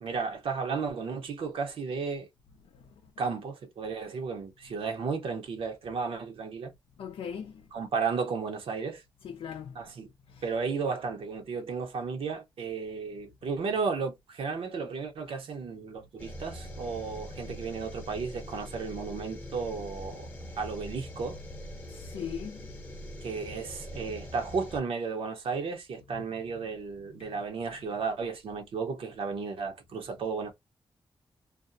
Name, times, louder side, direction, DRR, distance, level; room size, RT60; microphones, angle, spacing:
voice 1, 0.0-2.3 3.2-6.7 7.7-9.0 9.7-10.1 10.4-20.2 20.6-21.4 23.2-30.5, right 5 dB, 85° right, 0.8 m, -34 dB
voice 2, 7.0-7.7 9.2-9.8 10.3-10.4 21.8-22.8 24.0-24.1 26.1-26.2 26.6-26.7 27.1-27.4, left 8 dB, 85° left, 0.4 m, -40 dB
sound 1, 16.2-24.8, equal, 20° left, 0.8 m, -43 dB
2.5 x 2.0 x 2.5 m
cardioid pair, 95°, 9 cm